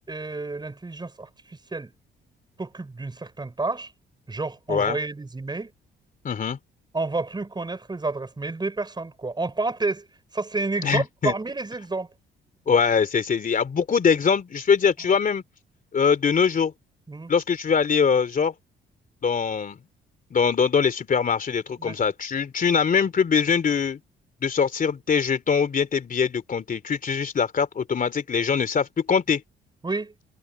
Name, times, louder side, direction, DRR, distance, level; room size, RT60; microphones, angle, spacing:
voice 1, 0.1-1.9 2.6-3.9 4.3-5.7 6.9-10.1 10.3-12.1 17.1-17.3 21.8-22.0 29.8-30.1, right 3 dB, 20° right, 5.6 m, -30 dB
voice 2, 6.2-6.6 10.8-11.3 12.7-15.4 15.9-16.7 17.3-18.5 19.2-19.8 20.3-24.0 24.4-29.4, left 6 dB, 45° left, 3.0 m, -22 dB
cardioid pair, 90°, 20 cm